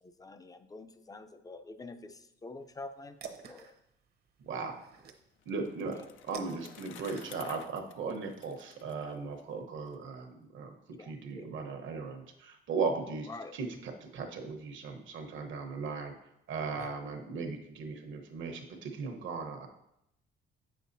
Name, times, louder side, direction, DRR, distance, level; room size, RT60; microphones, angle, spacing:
voice 1, 0.0-3.7 5.9-6.0 10.9-11.5 13.3-13.5 16.7-16.9, left 3 dB, 20° left, 9 dB, 0.5 m, -47 dB
sound 1, 2.6-7.7, right 6 dB, 55° right, 0.8 m, -51 dB
voice 2, 4.4-4.8 5.4-6.0 6.3-16.1 16.5-19.7, right 4 dB, 75° right, 4 dB, 1.1 m, -37 dB
Bicycle, 4.9-9.9, left 9 dB, 75° left, 0.5 m, -53 dB
7.8 x 6.4 x 2.7 m, 0.82 s
cardioid pair, 90°, 20 cm